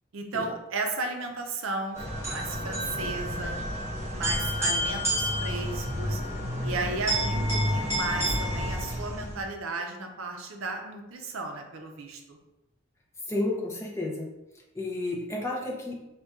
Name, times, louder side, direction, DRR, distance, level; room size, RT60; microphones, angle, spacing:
voice 1, 0.1-2.0 2.3-3.6 4.1-6.2 6.6-12.4, right 3 dB, 70° right, 3 dB, 0.5 m, -34 dB
sound 1, 1.9-9.5, equal, 10° right, 1.0 m, -29 dB
voice 2, 13.3-14.3 14.8-15.9, left 2 dB, 15° left, -2 dB, 0.4 m, -31 dB
4.1 x 2.2 x 3.6 m, 1.0 s
head